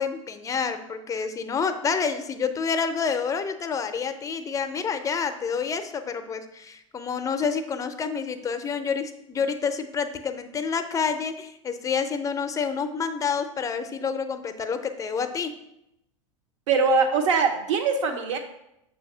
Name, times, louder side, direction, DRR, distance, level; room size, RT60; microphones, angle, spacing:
voice 1, 0.0-15.6, left 6 dB, 20° left, 8 dB, 0.6 m, -28 dB
voice 2, 16.7-18.4, right 5 dB, 65° right, 4 dB, 1.0 m, -22 dB
7.0 x 2.8 x 5.5 m, 0.83 s
figure-of-eight pair, 85°, 17 cm